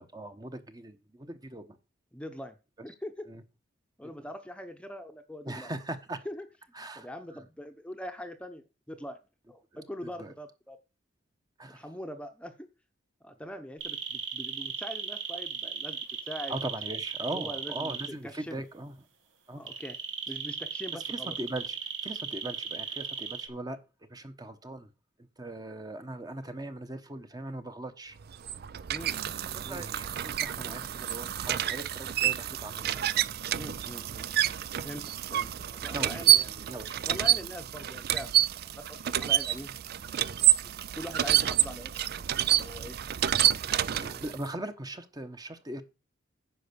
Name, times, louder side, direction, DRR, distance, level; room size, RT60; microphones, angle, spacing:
voice 1, 0.0-1.8 3.3-3.4 5.4-6.2 6.7-7.1 10.2-10.3 11.6-11.8 16.5-18.9 19.5-19.6 21.1-23.8 24.1-24.9 25.2-28.2 29.5-33.3 35.9-37.1 40.6-40.7 43.9-45.8, right 1 dB, 20° right, 1.1 m, -40 dB
voice 2, 2.1-2.6 2.8-3.2 4.0-5.7 6.2-6.5 7.0-9.2 9.5-10.8 11.7-12.7 13.2-16.6 17.3-18.0 18.2-18.6 19.6-20.0 20.3-21.3 28.9-29.2 29.6-29.9 33.5-34.3 34.8-36.5 37.0-39.8 40.1-40.5 41.0-43.0 43.6-44.3, equal, 5° left, 0.9 m, -42 dB
sound 1, 13.8-18.1 19.7-23.5, right 7 dB, 90° right, 2.0 m, -36 dB
sound 2, 28.2-44.5, right 12 dB, 55° right, 0.4 m, -28 dB
10.0 x 5.4 x 6.8 m
head